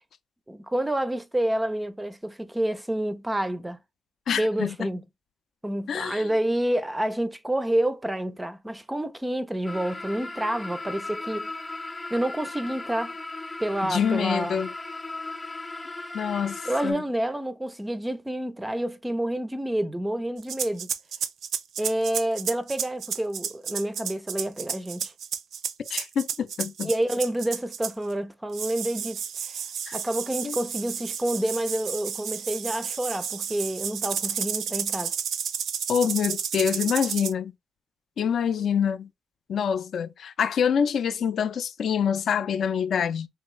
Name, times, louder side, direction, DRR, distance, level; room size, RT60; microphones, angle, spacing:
voice 1, 0.5-3.8 4.4-5.0 5.6-11.5 12.1-13.1 13.6-14.6 16.7-20.9 21.8-25.1 26.8-29.6 29.9-35.1, right 1 dB, 10° right, 0.4 m, -28 dB
voice 2, 4.3-4.7 5.9-6.2 13.9-14.7 16.1-17.0 25.9-26.9 29.9-30.0 30.4-30.6 35.9-37.5 38.2-39.1 39.5-43.3, left 7 dB, 60° left, 0.4 m, -26 dB
sound 1, 9.6-16.9, left 2 dB, 15° left, 0.7 m, -37 dB
sound 2, 20.4-28.1 28.5-37.3, right 8 dB, 65° right, 0.4 m, -32 dB
3.5 x 2.3 x 3.1 m
cardioid pair, 90°, 0 cm